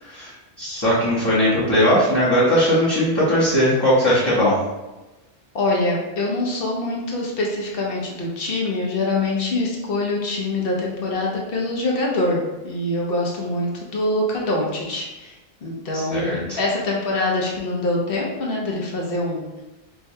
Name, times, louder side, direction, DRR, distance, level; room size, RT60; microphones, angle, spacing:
voice 1, 0.0-4.6 15.9-16.6, equal, 25° left, -10 dB, 0.8 m, -19 dB
voice 2, 5.5-15.3 15.6-19.6, left 2 dB, 55° left, -2 dB, 0.9 m, -24 dB
4.7 x 2.2 x 2.7 m, 1.1 s
omnidirectional pair, 1.2 m